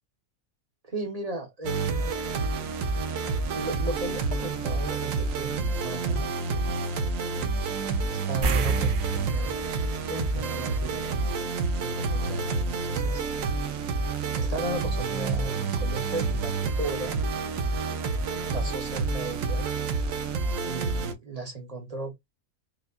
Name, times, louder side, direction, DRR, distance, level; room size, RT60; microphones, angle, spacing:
voice 1, 0.8-2.1 3.5-7.1 8.1-9.5 10.1-11.3 11.8-13.2 14.4-17.2 18.5-19.7 20.6-22.1, right 3 dB, 30° right, 1.1 m, -35 dB
sound 1, 1.6-21.1, right 4 dB, 70° right, 1.1 m, -29 dB
sound 2, 8.4-11.2 11.5-11.7 14.6-14.7 15.0-15.1, right 4 dB, 85° right, 0.4 m, -30 dB
5.1 x 2.4 x 2.4 m
omnidirectional pair, 1.5 m